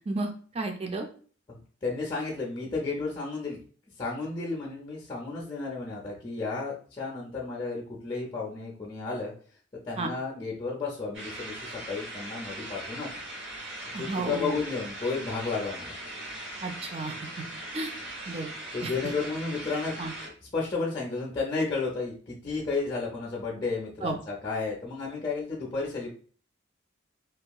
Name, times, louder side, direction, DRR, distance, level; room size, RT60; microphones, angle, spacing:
voice 1, 0.5-1.1 10.0-10.1 13.9-14.5 16.6-17.2 17.7-17.9 18.3-18.5 18.8-18.9 20.0-20.1 24.0-24.2, right 2 dB, 30° right, 4 dB, 0.4 m, -32 dB
voice 2, 1.5-3.6 4.0-9.3 9.9-13.1 14.0-16.0 18.7-20.0 20.4-26.1, left 4 dB, 25° left, -2 dB, 0.5 m, -32 dB
sound 1, 11.1-20.3, right 1 dB, 65° right, 1.0 m, -40 dB
2.8 x 2.3 x 2.2 m, 0.43 s
head